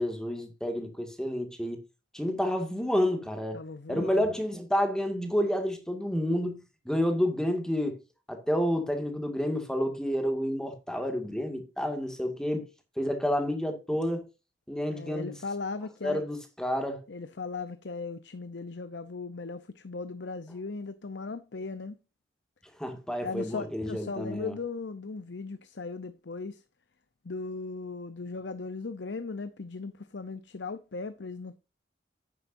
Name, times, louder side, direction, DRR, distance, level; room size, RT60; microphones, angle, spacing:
voice 1, 0.0-1.8 2.1-3.6 3.9-8.0 8.3-12.7 13.0-14.3 14.7-15.4 16.0-17.0 22.8-24.5, equal, 5° left, 2.0 m, -29 dB
voice 2, 3.5-4.3 14.9-16.2 17.1-22.0 23.2-26.6 27.2-31.6, left 4 dB, 75° left, 0.7 m, -38 dB
10.5 x 9.1 x 2.6 m
head